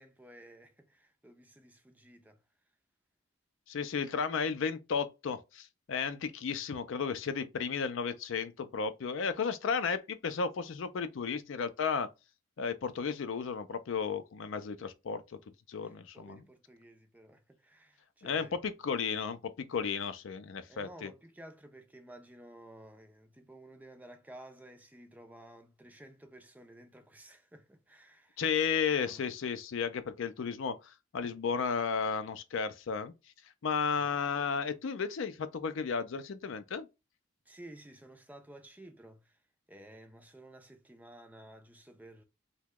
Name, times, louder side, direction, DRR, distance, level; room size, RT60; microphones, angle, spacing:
voice 1, 0.0-2.4 15.8-18.5 20.7-28.4 29.0-29.2 37.5-39.4 39.7-42.2, right 1 dB, 10° right, 0.4 m, -53 dB
voice 2, 3.7-12.1 12.6-15.2 15.7-16.4 18.2-21.1 28.4-33.1 33.6-36.9, left 6 dB, 65° left, 0.4 m, -33 dB
2.9 x 2.2 x 3.5 m
head